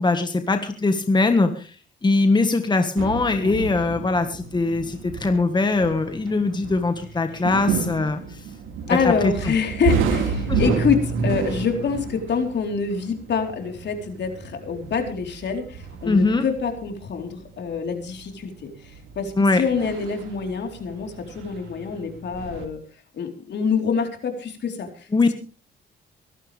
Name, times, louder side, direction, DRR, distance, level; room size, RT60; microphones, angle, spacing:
voice 1, 0.0-1.8 2.0-8.4 9.0-9.5 10.5-10.7 16.0-16.4 19.4-19.6 25.1-25.3, left 3 dB, 20° left, 7 dB, 1.6 m, -21 dB
sound 1, 3.0-22.7, right 5 dB, 85° right, 3.0 m, -31 dB
voice 2, 8.9-18.5 18.8-22.8 23.1-25.1, left 6 dB, 60° left, 4 dB, 4.1 m, -26 dB
24.0 x 12.0 x 3.5 m, 0.36 s
cardioid pair, 90°, 20 cm